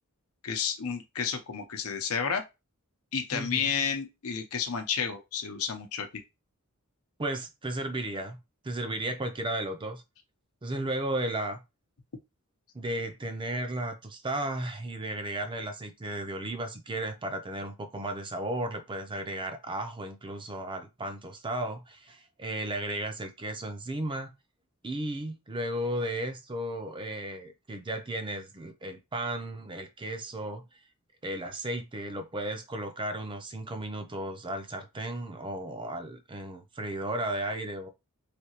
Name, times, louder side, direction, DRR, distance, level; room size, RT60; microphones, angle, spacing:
voice 1, 0.4-2.4 3.1-6.1, left 6 dB, 70° left, 0.7 m, -31 dB
voice 2, 3.3-3.7 7.2-8.4 8.6-10.0 10.6-11.6 12.7-24.3 24.8-30.6 31.2-37.9, right 1 dB, 20° right, 0.5 m, -34 dB
3.3 x 2.8 x 2.9 m
head